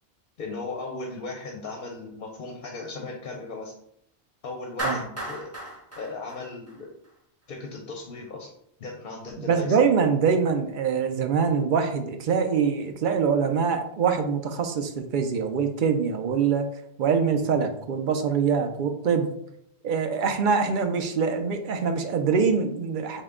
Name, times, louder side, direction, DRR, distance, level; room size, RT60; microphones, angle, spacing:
voice 1, 0.4-3.7 4.4-5.5 6.0-6.9 7.5-8.5 8.8-9.8, left 3 dB, 55° left, 2 dB, 0.7 m, -37 dB
Clapping, 4.8-7.1, right 1 dB, 15° right, 0.9 m, -34 dB
voice 2, 9.4-16.7 17.0-19.3 19.8-23.2, right 6 dB, 60° right, 6 dB, 0.6 m, -24 dB
5.4 x 2.2 x 3.7 m, 0.72 s
omnidirectional pair, 1.2 m